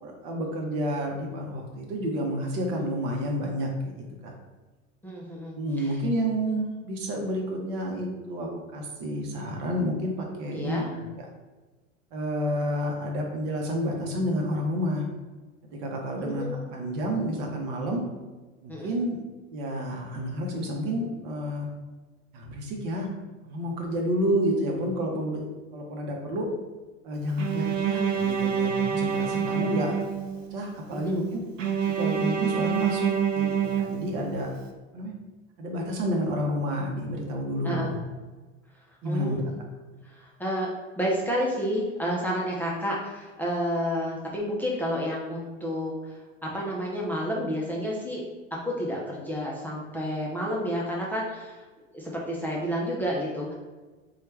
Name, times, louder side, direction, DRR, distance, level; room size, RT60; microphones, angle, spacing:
voice 1, 0.0-4.3 5.6-11.2 12.1-15.0 15.7-16.4 16.7-18.0 18.6-19.2 19.5-21.7 22.3-23.1 23.4-25.4 25.7-26.5 27.0-29.9 30.5-31.4 32.0-33.1 33.3-34.5 34.9-35.1 35.6-38.0 39.0-39.4, equal, 45° right, 1 dB, 0.9 m, -30 dB
voice 2, 5.0-6.0 10.5-10.9 16.1-16.6 18.7-18.9 29.3-29.4 30.9-31.1 37.6-37.9 39.0-39.4 40.0-40.7 41.0-48.2 48.5-51.6 51.9-53.5, equal, 5° left, -4 dB, 0.6 m, -30 dB
Bowed string instrument, 27.4-30.6 31.6-34.5, right 7 dB, 80° right, 0.6 m, -27 dB
4.3 x 2.4 x 3.2 m, 1.3 s
figure-of-eight pair, 80°, 38 cm